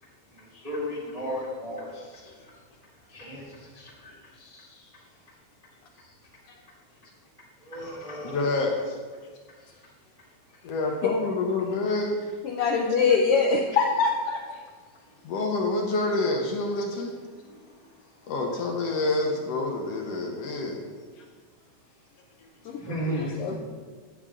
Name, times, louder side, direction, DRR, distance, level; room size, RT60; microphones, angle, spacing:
voice 1, 0.6-1.9 3.1-3.4 7.7-8.4 22.8-23.3, equal, 25° right, -6 dB, 0.8 m, -33 dB
voice 2, 8.2-9.0 10.6-12.2 15.2-17.1 18.3-20.8 21.2-21.3 23.1-23.4, left 2 dB, 70° left, 1 dB, 1.6 m, -27 dB
voice 3, 12.4-14.4 22.6-23.6, left 4 dB, 85° left, 1 dB, 1.3 m, -24 dB
8.7 x 8.2 x 3.7 m, 1.5 s
omnidirectional pair, 3.4 m